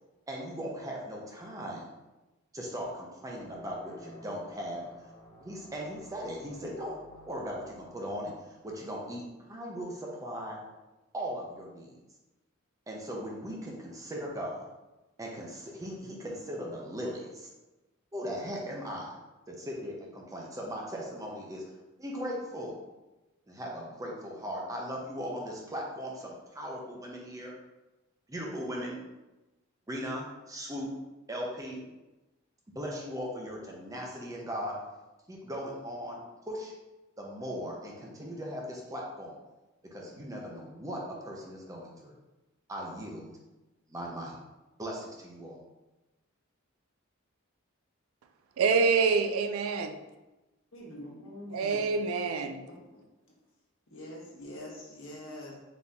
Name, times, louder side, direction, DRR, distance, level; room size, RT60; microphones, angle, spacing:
voice 1, 0.3-1.9 2.5-4.9 5.4-10.6 11.1-12.0 12.9-14.7 15.2-17.5 18.1-19.1 19.5-21.6 22.0-22.8 23.5-27.5 28.3-29.0 29.9-30.9 31.3-31.8 32.7-34.7 35.3-36.7 37.2-39.4 39.9-42.1 42.7-43.3 43.9-44.3 44.8-45.6, equal, 15° right, -2 dB, 0.6 m, -38 dB
sound 1, 3.2-9.4, left 1 dB, 20° left, 0.6 m, -53 dB
voice 2, 48.6-49.9 51.5-52.6, right 5 dB, 85° right, 7 dB, 0.4 m, -26 dB
voice 3, 50.7-51.9 52.9-53.0 53.9-55.5, left 1 dB, 70° left, -3 dB, 1.2 m, -44 dB
4.1 x 2.8 x 3.6 m, 1.1 s
head